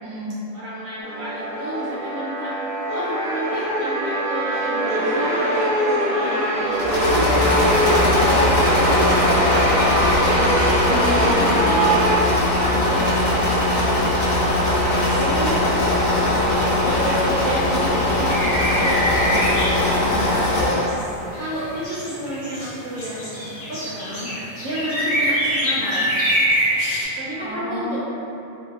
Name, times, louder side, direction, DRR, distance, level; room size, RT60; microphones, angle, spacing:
voice 1, 0.0-0.3 10.9-11.5 19.9-20.3 27.4-28.0, equal, 65° right, -11 dB, 0.4 m, -30 dB
voice 2, 0.5-2.6 2.9-6.9 7.6-10.6 10.9-11.9 12.5-15.6 16.2-19.6 20.3-20.5 21.4-24.3 24.6-26.1 27.2-28.0, right 1 dB, 80° right, -10 dB, 1.0 m, -31 dB
sound 1, 1.0-12.2, right 1 dB, 25° right, 0.9 m, -23 dB
Engine / Mechanisms, 6.7-21.0, left 1 dB, 75° left, 1.1 m, -20 dB
sound 2, 15.0-27.0, equal, 50° left, 0.8 m, -26 dB
2.5 x 2.3 x 2.3 m, 2.9 s
omnidirectional pair, 1.4 m